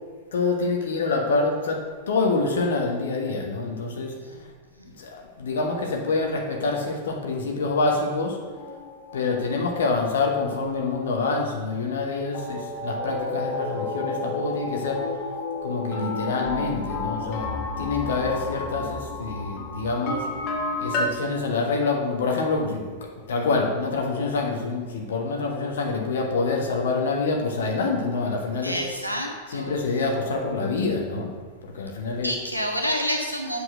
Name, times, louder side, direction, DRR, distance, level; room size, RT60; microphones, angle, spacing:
voice 1, 0.3-1.8 2.1-4.2 5.0-8.4 9.1-15.1 15.6-20.3 20.8-28.8 29.5-31.3 31.6-32.4, left 3 dB, 65° left, 2 dB, 1.3 m, -26 dB
sound 1, 8.6-12.1 12.3-21.1, left 2 dB, 40° left, 1.7 m, -32 dB
voice 2, 28.6-29.7 32.2-33.6, equal, 90° left, 1 dB, 1.5 m, -28 dB
7.9 x 6.9 x 6.2 m, 1.5 s
figure-of-eight pair, 90°, 0 cm